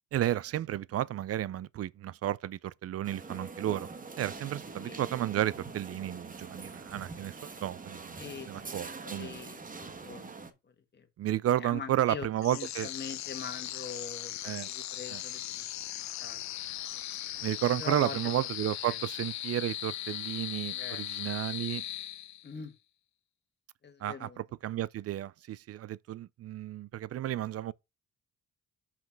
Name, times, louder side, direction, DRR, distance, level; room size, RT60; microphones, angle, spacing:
voice 1, 0.1-3.9 4.2-8.2 8.5-9.3 11.2-12.9 14.4-14.7 15.1-15.2 17.4-21.8 24.0-27.7, right 12 dB, 50° right, 0.4 m, -32 dB
sound 1, 3.0-10.5, right 4 dB, 25° right, 1.3 m, -44 dB
voice 2, 8.2-11.1 11.6-12.3 12.5-15.7 16.0-16.4 16.9-17.0 17.8-18.2 18.8-19.0 20.7-21.0 22.4-22.7 23.8-24.4, left 5 dB, 35° left, 1.8 m, -44 dB
sound 2, 12.4-22.6, left 13 dB, 65° left, 0.6 m, -38 dB
5.8 x 5.2 x 5.9 m
cardioid pair, 90°, 30 cm